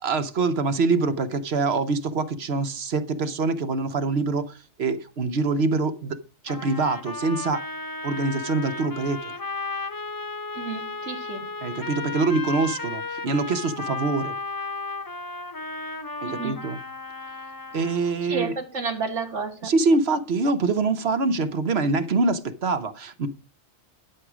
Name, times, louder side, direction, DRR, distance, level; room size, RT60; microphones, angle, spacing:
voice 1, 0.0-6.2 6.4-7.6 8.0-9.3 11.6-14.4 16.2-16.8 17.7-18.6 19.6-23.3, right 3 dB, 65° right, 1.2 m, -24 dB
sound 1, 6.5-18.2, left 3 dB, 20° left, 0.9 m, -34 dB
voice 2, 10.6-11.4 16.2-16.6 18.3-19.7, right 5 dB, 85° right, 2.2 m, -31 dB
12.0 x 6.2 x 5.0 m
omnidirectional pair, 1.2 m